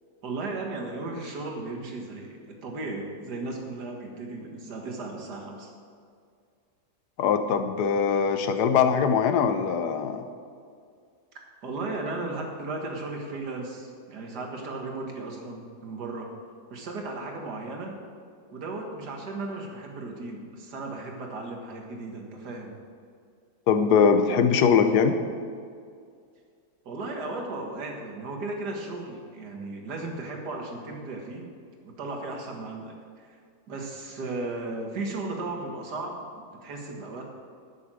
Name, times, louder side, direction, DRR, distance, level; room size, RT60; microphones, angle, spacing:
voice 1, 0.2-5.7 11.3-16.3 16.7-18.0 18.5-22.7 26.8-31.5 31.8-33.4 33.7-37.3, right 2 dB, 70° right, 2 dB, 2.2 m, -35 dB
voice 2, 7.2-10.2 23.7-25.2, left 6 dB, 75° left, 8 dB, 1.4 m, -22 dB
11.5 x 6.9 x 7.5 m, 2.2 s
omnidirectional pair, 1.8 m